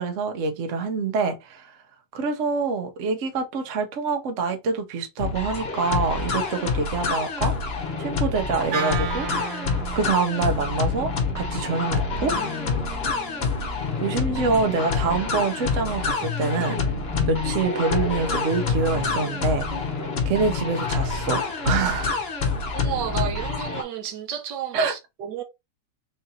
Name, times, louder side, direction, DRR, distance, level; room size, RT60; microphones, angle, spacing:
voice 1, 0.0-1.7 2.1-7.5 8.0-9.3 9.9-12.3 14.0-16.8 17.3-19.7 20.2-22.2 24.7-24.9, right 4 dB, 55° right, 1.0 m, -26 dB
sound 1, 5.2-23.8, left 4 dB, 45° left, 0.9 m, -27 dB
Wind instrument woodwind instrument, 8.7-13.0, right 7 dB, 90° right, 1.5 m, -35 dB
sound 2, 12.1-21.3, left 4 dB, 20° left, 1.4 m, -34 dB
voice 2, 22.7-25.4, right 8 dB, 75° right, 1.3 m, -32 dB
3.9 x 2.8 x 3.9 m
omnidirectional pair, 2.0 m